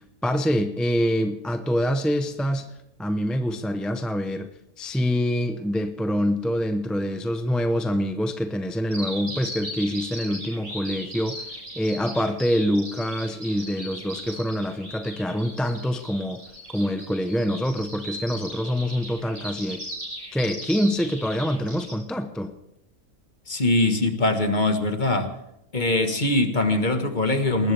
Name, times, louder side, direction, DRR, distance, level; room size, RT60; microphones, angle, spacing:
voice 1, 0.2-2.7 3.0-4.5 4.8-11.4 11.8-16.4 16.7-19.8 20.3-22.5, equal, ahead, 7 dB, 0.6 m, -25 dB
Bird vocalization bird call bird song, 8.9-21.9, equal, 35° right, 7.4 m, -37 dB
voice 2, 23.5-25.3 25.7-27.7, left 2 dB, 35° left, 7 dB, 1.6 m, -22 dB
21.0 x 19.5 x 3.4 m, 0.83 s
omnidirectional pair, 1.5 m